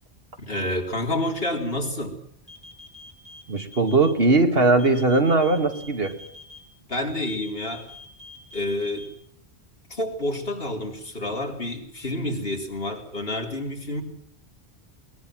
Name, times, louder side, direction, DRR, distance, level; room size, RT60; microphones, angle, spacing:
voice 1, 0.4-2.2 6.9-7.9 8.5-9.1 9.9-14.0, left 1 dB, 60° left, 2 dB, 4.0 m, -29 dB
sound 1, 2.5-4.1 4.8-6.6 7.3-9.1, left 2 dB, 30° left, 6.8 m, -45 dB
voice 2, 3.5-6.2, right 3 dB, 65° right, 6 dB, 2.5 m, -20 dB
21.5 x 21.0 x 7.7 m, 0.68 s
omnidirectional pair, 1.1 m